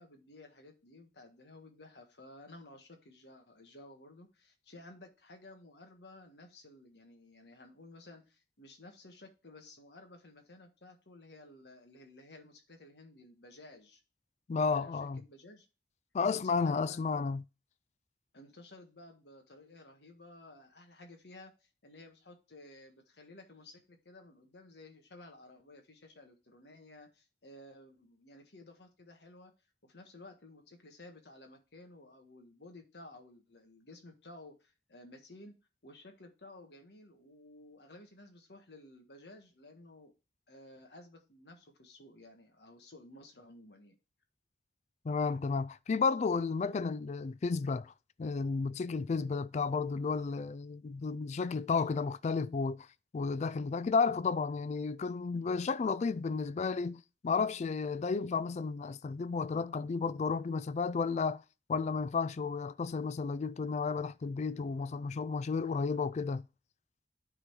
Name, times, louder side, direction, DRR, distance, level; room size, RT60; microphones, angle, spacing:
voice 1, 0.0-14.0 14.7-15.7 16.3-17.2 18.3-29.5 29.8-35.5 35.8-40.1 40.5-43.9, left 2 dB, 70° left, 1.5 m, -54 dB
voice 2, 14.5-15.2 16.1-17.4 45.0-47.9 48.2-52.9 53.1-61.4 61.7-66.4, left 4 dB, 40° left, 0.3 m, -32 dB
9.9 x 3.8 x 4.7 m
head